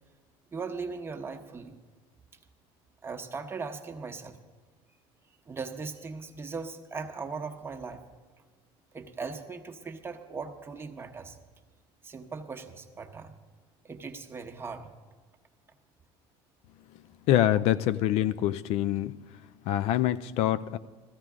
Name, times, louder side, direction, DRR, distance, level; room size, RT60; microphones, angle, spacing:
voice 1, 0.5-1.8 3.0-4.4 5.5-8.0 8.9-11.4 12.0-13.3 13.8-14.9, right 4 dB, 20° right, 4 dB, 1.0 m, -39 dB
voice 2, 17.3-19.2 19.7-20.8, left 12 dB, 65° left, 15 dB, 0.4 m, -25 dB
15.0 x 14.5 x 3.7 m, 1.4 s
supercardioid pair, 115°, 12 cm